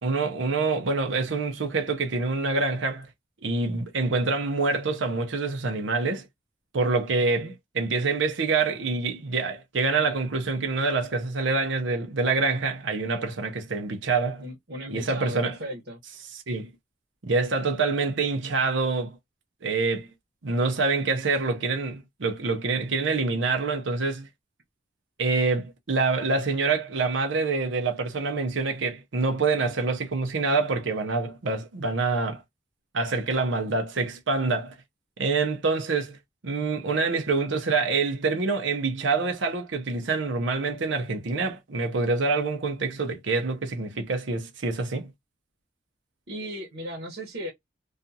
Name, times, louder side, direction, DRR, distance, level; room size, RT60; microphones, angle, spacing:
voice 1, 0.0-3.1 3.4-6.3 6.7-14.4 14.9-15.6 16.5-16.7 17.2-19.2 19.6-20.1 20.4-24.3 25.2-32.4 32.9-34.7 35.2-36.2 36.4-45.1, right 3 dB, 85° right, 0.7 m, -26 dB
voice 2, 7.2-7.6 14.4-16.0 46.3-47.5, equal, 60° right, 1.0 m, -37 dB
2.5 x 2.4 x 2.6 m
head